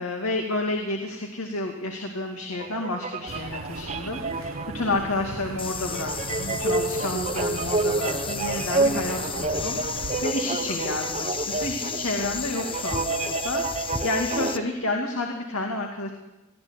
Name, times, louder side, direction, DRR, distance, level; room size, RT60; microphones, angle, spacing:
voice 1, 0.0-16.1, left 2 dB, 75° left, 2 dB, 2.4 m, -30 dB
sound 1, 2.5-14.6, right 3 dB, 30° right, 1.1 m, -29 dB
sound 2, 3.3-10.3, right 3 dB, 65° right, 0.9 m, -38 dB
sound 3, 5.6-14.6, left 6 dB, 25° left, 0.9 m, -34 dB
20.5 x 14.0 x 9.8 m, 1.0 s
head